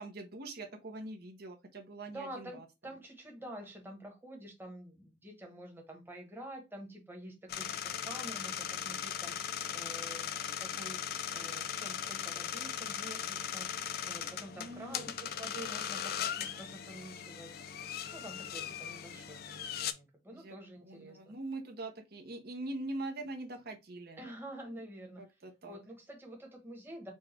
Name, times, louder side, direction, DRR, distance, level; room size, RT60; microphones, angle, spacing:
voice 1, 0.0-2.6 14.5-15.0 20.3-20.5 20.8-24.2 25.2-25.8, right 2 dB, 60° right, 0.9 m, -43 dB
voice 2, 2.1-9.3 9.7-10.3 10.6-13.7 14.0-17.5 18.1-21.3 24.2-25.2 25.6-27.1, right 1 dB, 10° right, 1.1 m, -48 dB
sound 1, 7.5-19.9, left 9 dB, 55° left, 0.4 m, -38 dB
4.6 x 2.3 x 4.2 m
head